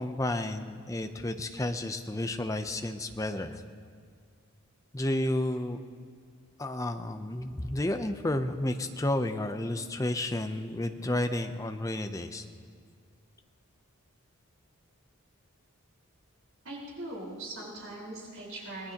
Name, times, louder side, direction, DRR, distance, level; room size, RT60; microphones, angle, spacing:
voice 1, 0.0-3.6 4.9-5.8 6.6-12.5, left 1 dB, 15° left, 7 dB, 0.6 m, -31 dB
voice 2, 16.6-18.9, right 1 dB, 70° right, -4 dB, 4.4 m, -40 dB
25.0 x 18.5 x 2.9 m, 2.1 s
head